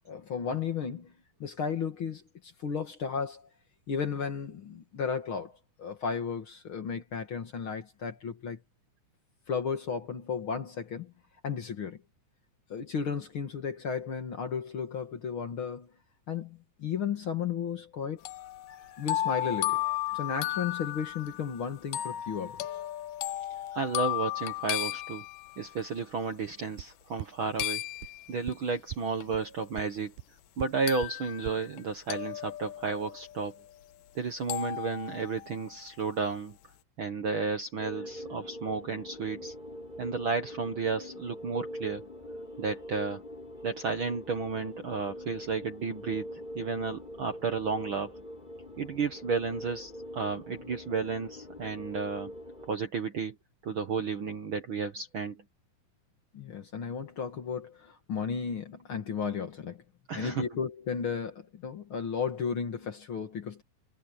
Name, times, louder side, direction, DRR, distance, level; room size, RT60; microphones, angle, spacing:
voice 1, 0.1-1.1 1.4-3.5 3.9-8.6 9.5-11.1 11.4-12.0 12.7-15.9 16.3-18.2 18.7-22.6 56.3-59.8 60.2-63.6, left 6 dB, 45° left, 2.1 m, -34 dB
sound 1, 18.3-25.8 27.6-28.5 29.2-29.3 30.9-31.8 32.1-33.9 34.5-35.8, left 14 dB, 85° left, 2.5 m, -35 dB
voice 2, 23.7-25.2 25.6-27.8 28.3-30.1 30.6-33.5 34.1-36.6 37.0-39.5 40.0-42.0 42.6-43.2 43.6-48.2 48.8-52.3 52.7-53.3 53.6-55.4 60.1-60.5, right 5 dB, 55° right, 1.6 m, -32 dB
sound 2, 26.8-26.9 27.2-27.3 27.6-27.7 28.0-28.1 28.5-28.6 28.9-29.0 29.3-29.4 29.8-29.9 30.2-30.3 30.6-30.7 31.0-31.1 31.5-31.6, right 16 dB, 85° right, 2.2 m, -37 dB
sound 3, 37.8-52.7, left 1 dB, 15° left, 3.9 m, -43 dB
omnidirectional pair, 3.7 m